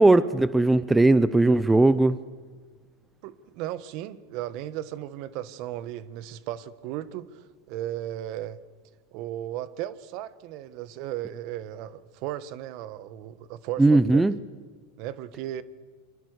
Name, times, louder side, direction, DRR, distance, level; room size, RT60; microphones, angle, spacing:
voice 1, 0.0-2.2 13.8-14.3, right 2 dB, 10° right, 15 dB, 0.8 m, -18 dB
voice 2, 3.2-8.6 9.1-14.2 15.0-15.6, right 12 dB, 55° right, 15 dB, 1.3 m, -35 dB
28.5 x 23.5 x 6.6 m, 1.5 s
hypercardioid pair, 110°, 0 cm